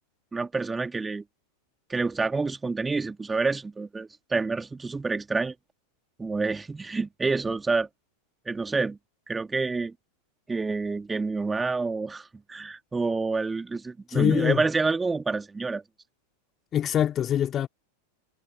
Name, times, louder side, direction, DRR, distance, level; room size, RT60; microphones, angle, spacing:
voice 1, 0.3-1.2 1.9-5.5 6.2-7.9 8.4-9.0 9.3-9.9 10.5-15.8, right 4 dB, 10° right, 3.0 m, -28 dB
voice 2, 14.1-14.6 16.7-17.7, left 10 dB, 25° left, 3.5 m, -24 dB
figure-of-eight pair, 90°, 0 cm